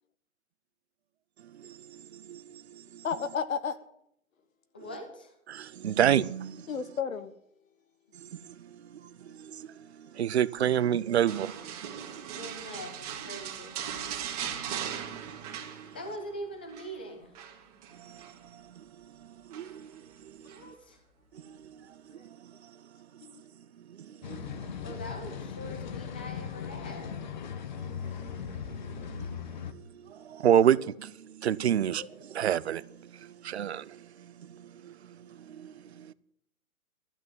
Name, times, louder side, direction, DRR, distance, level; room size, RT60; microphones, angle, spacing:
voice 1, 1.5-3.0 5.5-6.7 8.1-9.7 10.0-11.7 12.2-12.4 14.2-15.7 17.9-19.1 19.5-20.7 21.4-21.8 22.2-22.4 23.9-24.8 27.9-29.3 29.7-36.1, right 10 dB, 50° right, 0.6 m, -31 dB
voice 2, 3.0-3.8 6.7-7.3 22.1-22.2 23.2-23.4 32.0-32.1, left 6 dB, 70° left, 1.4 m, -32 dB
voice 3, 4.7-5.3 12.3-13.8 15.9-17.4 20.5-21.0 24.8-27.2, equal, 10° left, 0.5 m, -42 dB
sound 1, 11.3-16.3 16.5-16.9 17.3-18.4 19.5-20.0 20.5-20.6, right 8 dB, 30° right, 2.1 m, -39 dB
sound 2, 24.2-29.7, left 7 dB, 35° left, 0.8 m, -38 dB
12.5 x 8.3 x 9.0 m
hypercardioid pair, 160°, 42 cm